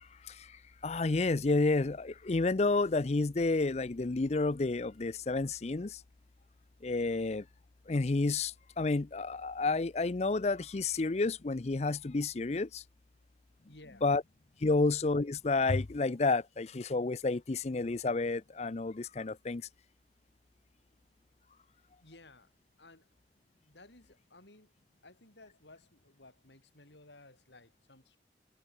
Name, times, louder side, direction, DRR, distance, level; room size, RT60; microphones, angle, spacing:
voice 1, 0.2-6.0 6.8-7.4 7.9-12.8 14.0-14.2 14.6-19.7, left 3 dB, 40° left, 0.5 m, -30 dB
voice 2, 13.7-14.1 14.7-14.8 22.0-22.5 22.8-23.1 23.6-24.7 25.0-28.2, left 2 dB, 85° left, 5.6 m, -57 dB
head